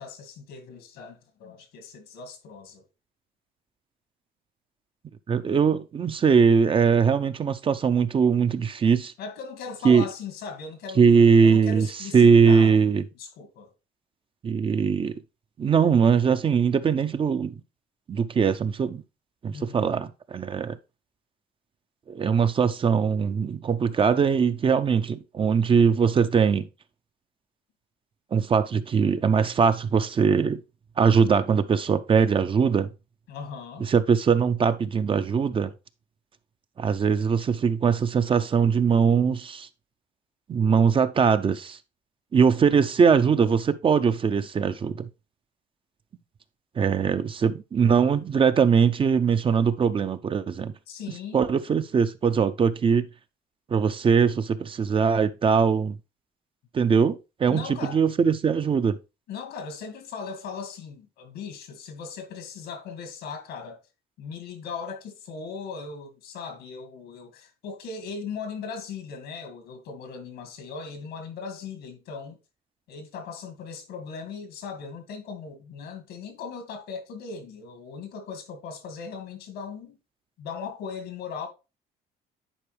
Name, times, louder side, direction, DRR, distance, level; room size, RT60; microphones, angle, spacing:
voice 1, 0.0-2.8 9.2-11.0 11.4-12.8 13.2-13.7 19.5-19.9 33.3-33.9 50.9-51.5 57.5-58.0 59.3-63.8 64.2-72.4 72.9-80.0 80.4-81.5, left 5 dB, 80° left, 1.9 m, -38 dB
voice 2, 5.3-9.1 9.8-10.0 11.0-11.9 12.1-13.0 14.4-15.1 15.6-17.5 18.1-19.0 19.4-20.8 22.1-26.7 28.3-30.6 31.0-32.9 33.9-35.7 36.8-39.7 40.5-41.8 42.3-45.1 46.8-50.7 51.3-53.1 53.7-56.0 56.7-59.0, right 6 dB, 30° right, 0.5 m, -21 dB
10.0 x 4.6 x 3.2 m
cardioid pair, 110°, 17 cm